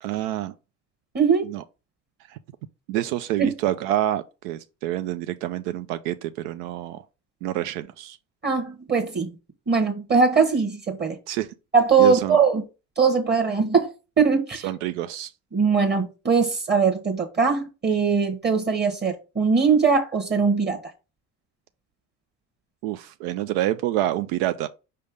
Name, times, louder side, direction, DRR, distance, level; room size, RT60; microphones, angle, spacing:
voice 1, 0.0-0.5 1.4-1.6 2.3-2.4 2.9-7.0 7.4-8.2 11.3-11.5 12.0-12.4 14.6-15.3 22.8-24.7, right 13 dB, 65° right, 0.5 m, -27 dB
voice 2, 1.1-1.5 3.4-3.5 8.4-9.3 9.7-11.2 11.7-12.6 13.0-13.9 14.2-14.7 15.5-20.8, right 5 dB, 25° right, 1.3 m, -21 dB
5.5 x 3.4 x 5.0 m
hypercardioid pair, 65°, 40 cm